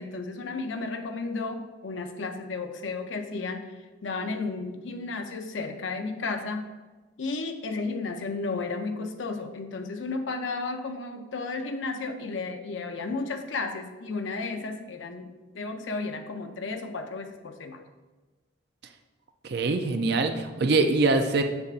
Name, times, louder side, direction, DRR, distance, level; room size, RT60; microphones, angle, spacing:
voice 1, 0.0-3.7 4.0-6.7 7.2-17.8, left 3 dB, 70° left, 6 dB, 0.6 m, -33 dB
voice 2, 19.4-21.4, right 3 dB, 55° right, 6 dB, 0.4 m, -23 dB
6.9 x 6.7 x 2.5 m, 1.3 s
head